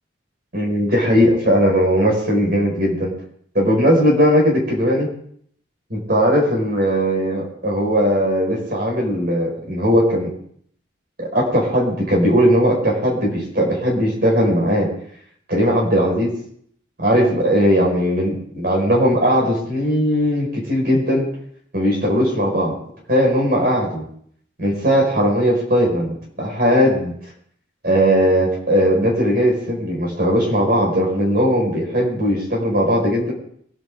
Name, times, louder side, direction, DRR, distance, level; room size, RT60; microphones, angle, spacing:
voice 1, 0.5-3.1 3.5-5.1 5.9-10.3 11.2-14.9 15.5-16.4 17.0-21.3 21.7-22.7 23.1-24.0 24.6-27.1 27.8-33.3, equal, 50° right, -1 dB, 5.0 m, -18 dB
23.0 x 10.5 x 3.7 m, 0.63 s
head